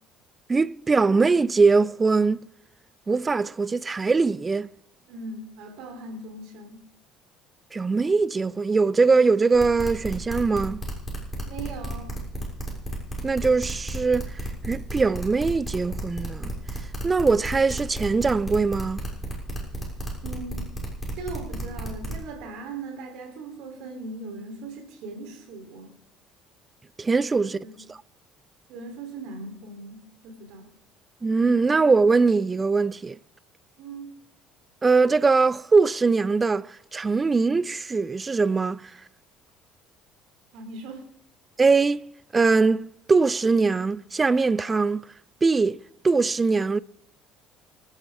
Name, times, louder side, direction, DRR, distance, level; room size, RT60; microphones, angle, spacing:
voice 1, 0.5-2.4 3.1-4.7 7.7-10.8 13.2-16.5 17.0-19.0 27.0-27.6 31.2-33.2 34.8-38.9 41.6-42.0 42.3-45.0 45.4-46.8, right 4 dB, 25° right, 0.5 m, -22 dB
voice 2, 5.1-6.8 11.5-12.2 20.2-20.7 21.1-25.9 27.6-27.8 28.7-30.7 33.8-34.1 40.5-41.1, right 3 dB, 60° right, 3.6 m, -39 dB
sound 1, 9.5-22.2, equal, 10° left, 6.7 m, -33 dB
25.5 x 11.0 x 3.7 m
figure-of-eight pair, 55°, 0 cm